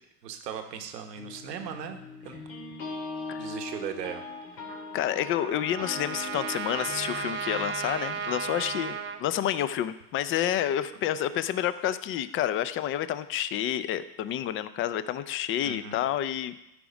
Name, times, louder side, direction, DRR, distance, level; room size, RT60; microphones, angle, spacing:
voice 1, 0.2-2.4 3.4-4.2 15.6-16.0, right 8 dB, 85° right, 5 dB, 1.3 m, -38 dB
sound 1, 1.2-9.5, left 3 dB, 90° left, 2.7 m, -42 dB
Trumpet, 4.7-9.2, right 6 dB, 25° right, 0.7 m, -35 dB
voice 2, 4.9-16.6, left 11 dB, 30° left, 14 dB, 0.4 m, -29 dB
13.5 x 4.8 x 5.2 m, 0.87 s
hypercardioid pair, 100°, 48 cm